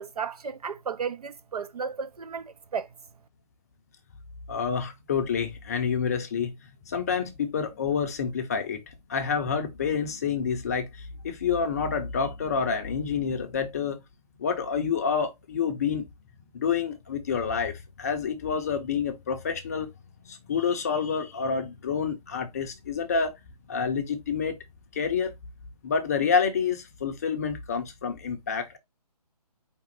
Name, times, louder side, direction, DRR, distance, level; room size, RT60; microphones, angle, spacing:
voice 1, 0.0-2.9, right 6 dB, 65° right, 0.7 m, -34 dB
voice 2, 4.5-6.6 6.9-14.0 14.4-16.1 16.5-19.9 20.3-23.4 23.7-24.6 24.9-25.3 25.8-28.8, left 6 dB, 25° left, 0.6 m, -28 dB
5.0 x 3.6 x 3.0 m
hypercardioid pair, 160°, 21 cm